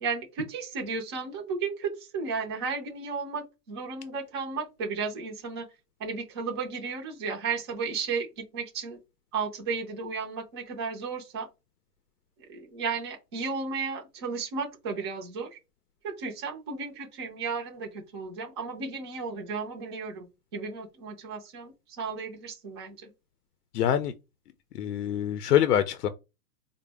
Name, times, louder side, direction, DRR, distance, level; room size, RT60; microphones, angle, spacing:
voice 1, 0.0-5.7 6.0-9.0 9.3-11.5 12.5-15.6 16.0-23.1, right 5 dB, 20° right, 0.4 m, -34 dB
voice 2, 23.7-24.1 24.7-26.1, left 10 dB, 90° left, 0.6 m, -25 dB
3.9 x 2.0 x 3.3 m
hypercardioid pair, 145°, 46 cm